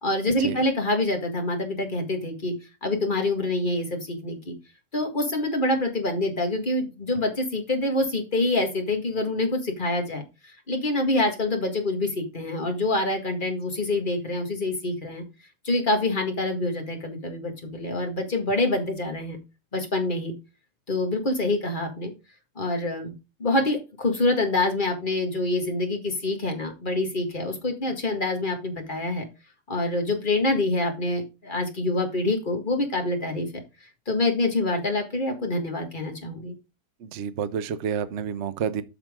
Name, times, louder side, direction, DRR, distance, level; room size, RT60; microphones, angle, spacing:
voice 1, 0.0-2.5 2.8-4.5 4.9-10.2 10.7-15.2 15.6-19.4 19.7-20.3 20.9-22.1 22.6-23.1 23.4-29.3 29.7-33.5 34.1-36.6, left 2 dB, 30° left, 1.9 m, -26 dB
voice 2, 37.0-38.8, right 7 dB, 55° right, 0.8 m, -29 dB
9.0 x 6.0 x 3.6 m
omnidirectional pair, 1.8 m